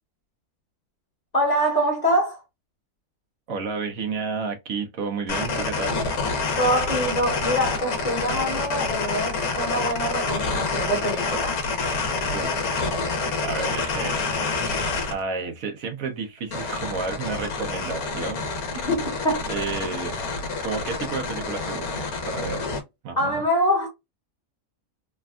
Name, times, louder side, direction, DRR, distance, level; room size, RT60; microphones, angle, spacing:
voice 1, 1.3-2.4 6.6-11.6 18.8-19.4 23.2-23.9, equal, 30° left, 1.1 m, -24 dB
voice 2, 3.5-6.0 12.3-12.7 13.4-14.2 15.1-18.5 18.7-18.8 19.5-20.2 20.6-22.7 23.0-23.4, right 4 dB, 70° right, 1.1 m, -31 dB
sound 1, 5.3-15.1 16.5-22.8, left 4 dB, 75° left, 1.2 m, -27 dB
3.4 x 2.2 x 2.3 m
omnidirectional pair, 1.6 m